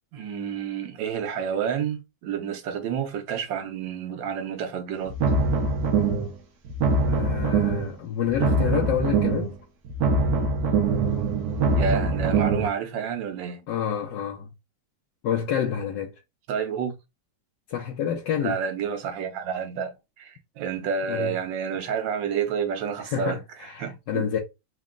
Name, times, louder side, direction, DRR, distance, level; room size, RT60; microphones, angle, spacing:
voice 1, 0.1-5.2 11.7-13.6 16.5-17.0 18.4-24.3, right 7 dB, 90° right, 1.5 m, -29 dB
sound 1, 5.0-6.3 6.6-7.9 8.2-9.5 9.8-12.7, right 4 dB, 60° right, 1.3 m, -23 dB
voice 2, 7.1-9.5 13.7-14.5 15.2-16.1 17.7-18.6 21.1-21.3 23.1-24.4, left 9 dB, 80° left, 1.3 m, -28 dB
4.1 x 2.2 x 3.6 m
omnidirectional pair, 2.0 m